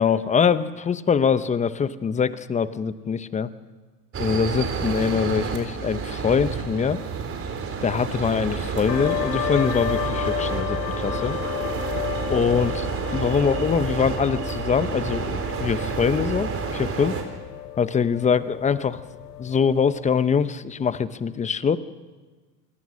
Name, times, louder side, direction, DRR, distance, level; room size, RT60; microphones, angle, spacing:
voice 1, 0.0-3.5 4.2-7.0 7.8-11.4 12.3-12.9 13.1-17.2 17.8-19.0 19.4-21.8, left 6 dB, 15° left, 15 dB, 0.8 m, -23 dB
sound 1, 4.1-17.2, right 6 dB, 30° right, 4.0 m, -29 dB
sound 2, 8.9-20.2, left 14 dB, 75° left, 0.8 m, -33 dB
27.5 x 20.0 x 6.4 m, 1.3 s
hypercardioid pair, 105°, 48 cm